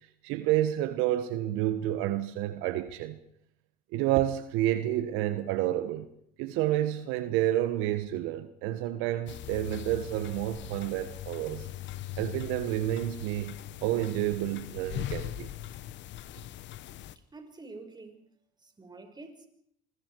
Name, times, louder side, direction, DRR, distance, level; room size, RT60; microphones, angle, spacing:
voice 1, 0.2-3.2 3.9-6.1 6.4-11.7 12.2-13.5 13.8-15.5, right 13 dB, 75° right, 1.4 m, -29 dB
sound 1, 9.3-17.2, left 13 dB, 60° left, 1.2 m, -40 dB
voice 2, 17.0-18.2 18.6-19.5, right 3 dB, 20° right, 5.2 m, -48 dB
27.5 x 22.0 x 4.7 m
hypercardioid pair, 75°, 21 cm